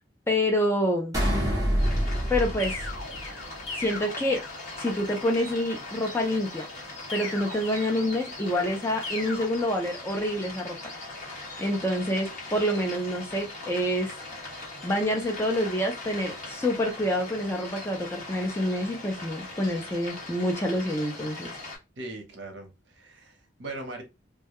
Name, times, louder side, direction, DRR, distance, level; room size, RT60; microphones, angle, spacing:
voice 1, 0.3-1.2 2.3-2.8 3.7-4.4 4.8-6.6 7.1-10.8 11.6-14.1 14.8-21.6, left 1 dB, 15° left, 0.4 m, -27 dB
sound 1, 1.1-3.7, equal, 15° right, 0.7 m, -27 dB
sound 2, 1.8-21.8, left 2 dB, 40° left, 1.1 m, -40 dB
sound 3, 2.6-5.0 7.1-8.5 9.0-9.5, left 3 dB, 75° left, 1.1 m, -39 dB
voice 2, 22.0-24.0, right 2 dB, 65° right, 0.7 m, -40 dB
2.2 x 2.1 x 2.8 m
head